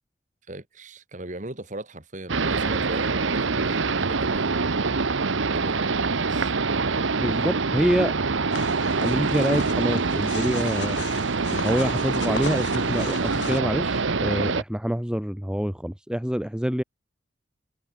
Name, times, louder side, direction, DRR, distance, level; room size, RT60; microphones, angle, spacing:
voice 1, 0.5-4.7 5.5-6.5, right 1 dB, 40° right, 2.1 m, -38 dB
sound 1, 2.3-14.6, right 4 dB, 80° right, 1.1 m, -25 dB
voice 2, 7.2-8.1 9.0-11.0 11.6-16.8, equal, 5° right, 0.5 m, -26 dB
sound 2, 8.5-13.6, left 5 dB, 60° left, 1.1 m, -37 dB
head